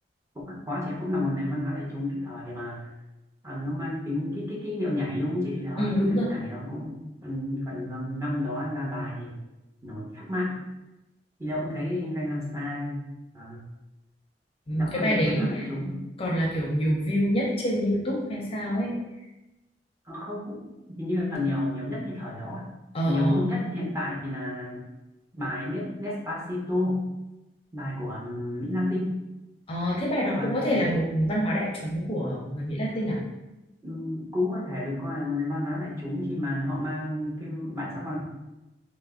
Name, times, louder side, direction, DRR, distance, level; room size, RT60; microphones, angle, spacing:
voice 1, 0.3-2.9 3.4-9.4 9.8-10.6 11.4-13.0 13.3-13.7 14.7-16.0 20.1-22.7 23.0-24.9 25.3-27.1 27.7-29.1 30.4-30.9 33.8-38.2, left 1 dB, 15° right, -5 dB, 0.8 m, -31 dB
voice 2, 5.8-6.3 14.7-15.7 16.2-19.0 22.9-23.4 29.7-33.2, equal, 35° left, -3 dB, 0.6 m, -26 dB
3.3 x 2.0 x 3.6 m, 0.99 s
head